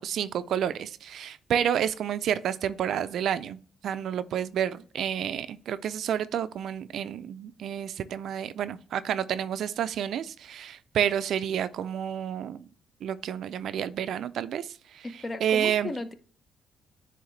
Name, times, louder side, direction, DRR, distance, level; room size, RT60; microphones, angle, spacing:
voice 1, 0.0-3.6 3.8-12.7 13.0-15.0 15.4-15.9, right 9 dB, 70° right, 0.4 m, -30 dB
voice 2, 15.0-16.1, left 2 dB, 30° left, 0.8 m, -36 dB
9.5 x 3.5 x 3.2 m
cardioid pair, 90°, 0 cm